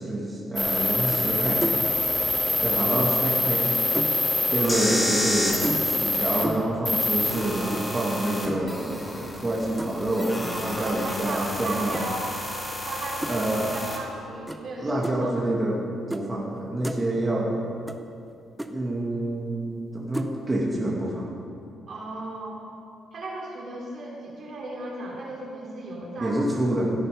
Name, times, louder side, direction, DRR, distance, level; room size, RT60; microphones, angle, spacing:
voice 1, 0.0-1.7 2.6-3.7 4.0-4.1 4.5-12.0 13.3-13.7 14.8-15.8 16.1-17.6 18.7-21.3 26.2-26.9, right 1 dB, 25° right, -4 dB, 2.4 m, -27 dB
sound 1, 0.6-6.4 6.9-14.0, left 2 dB, 20° left, 2.3 m, -27 dB
sound 2, 1.1-1.3 1.6-2.0 3.2-4.2 5.6-6.1 6.4-6.8 7.7-7.9 8.5-8.7 9.8-10.1 11.9-12.1 13.2-13.4 14.5-14.6 15.0-15.2 16.1-16.2 16.6-17.0 17.9-18.0 18.3-18.4 18.6-18.7 20.1-20.3, right 1 dB, 5° right, 0.8 m, -32 dB
voice 2, 10.8-12.3 12.9-15.3 21.9-22.6 23.1-26.4, right 2 dB, 55° right, -3 dB, 3.3 m, -36 dB
16.5 x 9.0 x 5.3 m, 2.5 s
cardioid pair, 90°, 0 cm